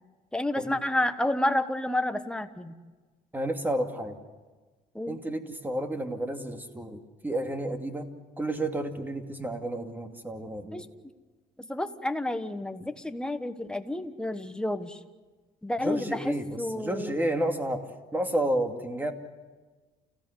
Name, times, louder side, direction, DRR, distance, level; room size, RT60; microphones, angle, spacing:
voice 1, 0.3-2.7 4.9-5.2 10.7-10.9 11.6-15.0 15.6-17.2, left 1 dB, 5° left, 8 dB, 1.3 m, -30 dB
voice 2, 3.3-4.2 5.1-8.1 8.4-10.8 15.8-16.5 16.7-19.1, right 1 dB, 10° right, 5 dB, 2.5 m, -31 dB
29.5 x 16.5 x 8.2 m, 1.3 s
cardioid pair, 110°, 17 cm